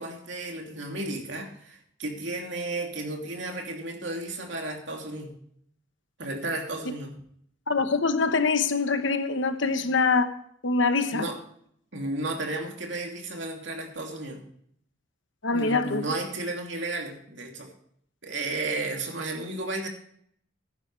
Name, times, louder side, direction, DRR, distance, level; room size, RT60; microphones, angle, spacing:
voice 1, 0.0-5.3 6.2-7.1 11.1-11.4 11.9-14.4 15.5-17.7 18.2-19.9, right 2 dB, 65° right, 2.8 m, -33 dB
voice 2, 7.7-10.3 10.6-11.3 15.4-16.0, left 4 dB, 65° left, 1.1 m, -24 dB
14.5 x 11.0 x 3.3 m
head